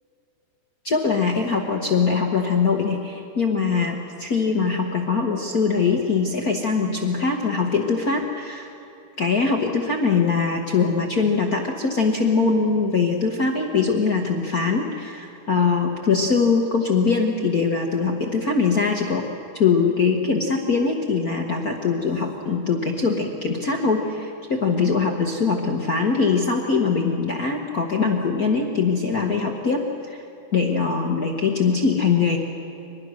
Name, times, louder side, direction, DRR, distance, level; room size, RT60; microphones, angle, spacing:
voice 1, 0.8-8.7 9.2-19.3 19.5-30.2 30.5-32.4, left 5 dB, 65° left, 1 dB, 0.8 m, -22 dB
24.0 x 20.5 x 6.3 m, 2.9 s
omnidirectional pair, 3.5 m